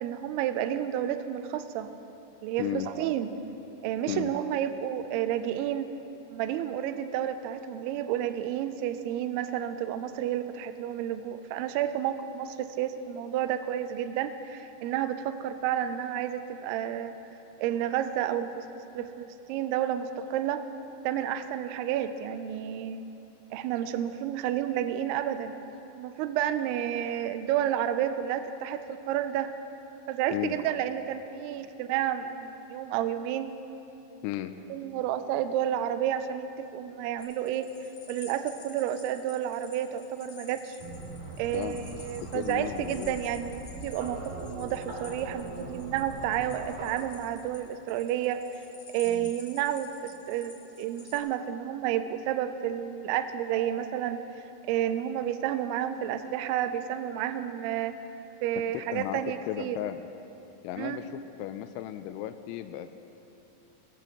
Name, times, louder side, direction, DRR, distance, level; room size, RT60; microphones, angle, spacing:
voice 1, 0.0-1.9 2.4-3.3 3.8-5.9 6.3-17.1 17.6-18.7 18.9-20.6 21.0-23.0 23.5-25.5 26.0-29.5 30.1-33.5 34.7-37.7 38.1-40.8 41.4-48.4 48.9-50.5 50.8-57.9 58.4-59.8 60.8-61.0, right 10 dB, 90° right, 10 dB, 2.3 m, -31 dB
sound 1, 37.2-51.2, left 4 dB, 45° left, 2.1 m, -51 dB
sound 2, 40.8-46.9, right 2 dB, 55° right, 3.9 m, -41 dB
voice 2, 41.5-41.9 42.2-43.2 49.1-49.3 58.7-60.1 60.6-62.9, left 13 dB, 90° left, 8 dB, 3.0 m, -35 dB
21.5 x 19.5 x 3.0 m, 2.9 s
omnidirectional pair, 5.3 m